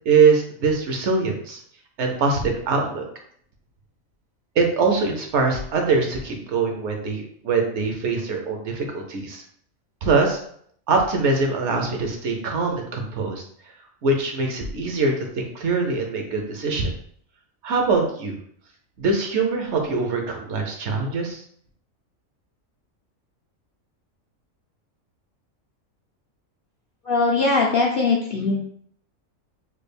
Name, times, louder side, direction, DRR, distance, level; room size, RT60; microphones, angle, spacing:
voice 1, 0.1-1.6 2.0-3.1 4.6-9.4 10.0-10.4 10.9-13.4 14.0-16.9 17.6-18.4 19.0-21.4, right 4 dB, 65° right, 2 dB, 0.8 m, -23 dB
voice 2, 27.1-28.6, left 3 dB, 65° left, -3 dB, 0.5 m, -20 dB
3.2 x 2.3 x 3.3 m, 0.63 s
omnidirectional pair, 1.4 m